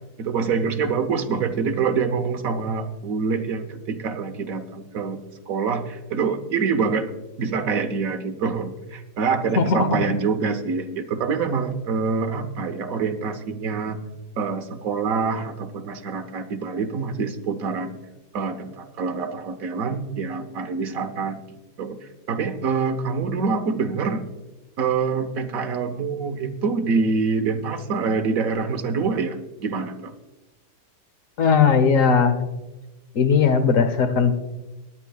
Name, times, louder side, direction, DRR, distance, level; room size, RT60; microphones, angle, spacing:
voice 1, 0.2-5.2 5.5-7.1 7.4-14.0 14.4-18.0 18.3-21.4 21.8-22.0 22.3-24.2 24.8-30.1, right 5 dB, 60° right, 6 dB, 1.3 m, -25 dB
voice 2, 9.6-9.9 31.4-32.5 33.1-34.3, left 6 dB, 55° left, 9 dB, 1.2 m, -18 dB
22.5 x 10.0 x 2.3 m, 1.1 s
omnidirectional pair, 1.8 m